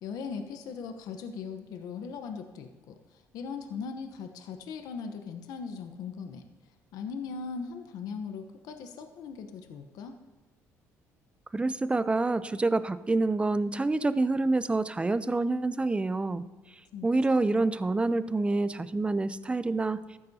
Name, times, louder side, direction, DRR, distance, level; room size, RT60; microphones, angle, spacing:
voice 1, 0.0-6.4 6.9-10.2 16.9-17.7, left 5 dB, 75° left, 7 dB, 1.0 m, -39 dB
voice 2, 11.5-16.4 17.0-20.0, right 2 dB, 15° right, 13 dB, 0.6 m, -27 dB
14.5 x 12.5 x 2.8 m, 1.3 s
supercardioid pair, 85°, 7 cm